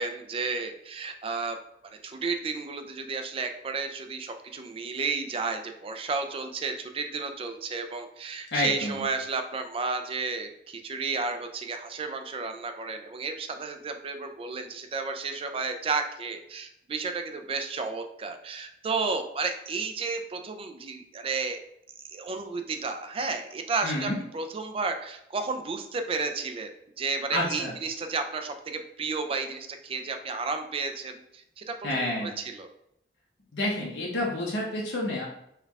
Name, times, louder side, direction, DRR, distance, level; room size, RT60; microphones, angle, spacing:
voice 1, 0.0-1.6 2.0-21.6 22.1-26.7 27.0-32.7, right 4 dB, 30° right, 6 dB, 0.4 m, -32 dB
voice 2, 8.5-9.0 23.8-24.2 27.3-27.8 31.8-32.4 33.5-35.3, left 1 dB, 85° left, -3 dB, 0.8 m, -29 dB
4.5 x 2.3 x 3.4 m, 0.78 s
head